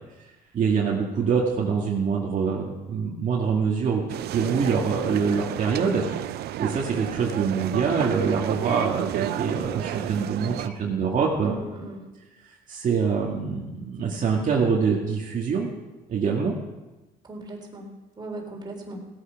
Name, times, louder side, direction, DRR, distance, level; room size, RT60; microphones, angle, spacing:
voice 1, 0.5-11.6 12.4-15.7 16.1-16.6, right 5 dB, 50° right, -3 dB, 2.1 m, -25 dB
sound 1, 4.1-10.7, right 13 dB, 70° right, 0.6 m, -31 dB
voice 2, 11.4-12.1 17.2-19.1, right 1 dB, 25° right, 0 dB, 3.7 m, -38 dB
17.5 x 8.7 x 6.0 m, 1.1 s
cardioid pair, 110°, 17 cm